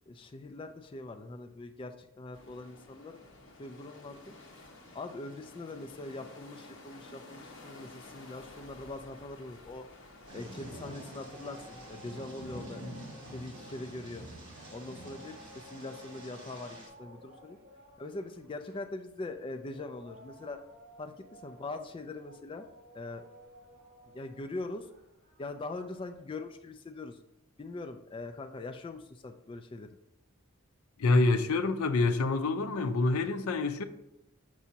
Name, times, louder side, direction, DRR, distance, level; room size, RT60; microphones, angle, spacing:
voice 1, 0.1-3.2 3.6-4.3 4.9-9.9 10.3-12.8 13.3-14.3 14.7-17.6 18.0-20.6 21.0-22.7 22.9-23.2 24.1-24.9 25.4-27.2 27.6-29.9, left 2 dB, 25° left, 0.3 m, -42 dB
sound 1, 2.3-11.9, left 2 dB, 60° left, 1.2 m, -52 dB
sound 2, 9.9-26.2, equal, 45° right, 2.1 m, -55 dB
Thunder / Rain, 10.3-16.9, right 1 dB, 25° right, 2.3 m, -47 dB
voice 2, 31.0-33.8, left 3 dB, 80° left, 0.5 m, -27 dB
6.9 x 6.1 x 2.8 m
head